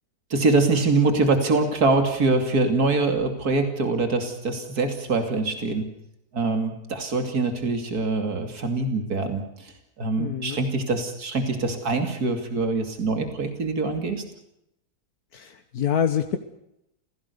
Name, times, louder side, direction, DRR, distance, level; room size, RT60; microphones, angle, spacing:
voice 1, 0.3-5.8 6.3-9.7 10.0-14.2, right 3 dB, 80° right, 6 dB, 3.2 m, -24 dB
voice 2, 10.2-10.6 15.3-15.4 15.7-16.4, left 8 dB, 75° left, 8 dB, 1.8 m, -25 dB
28.5 x 17.0 x 6.9 m, 0.80 s
omnidirectional pair, 1.6 m